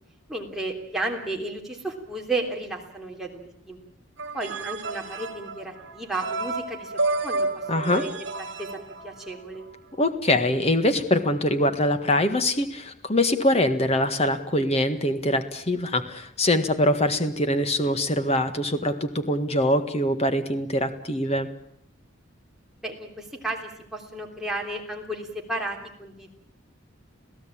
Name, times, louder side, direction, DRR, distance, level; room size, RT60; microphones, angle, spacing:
voice 1, 0.3-3.8 4.3-6.9 7.2-8.2 8.6-8.7 9.0-9.7 22.8-26.3, right 2 dB, ahead, -1 dB, 3.3 m, -33 dB
sound 1, 4.2-9.6, right 3 dB, 60° right, 2.9 m, -31 dB
voice 2, 7.7-8.0 10.0-21.5, left 1 dB, 30° left, 9 dB, 1.7 m, -23 dB
27.5 x 16.5 x 8.8 m, 0.71 s
head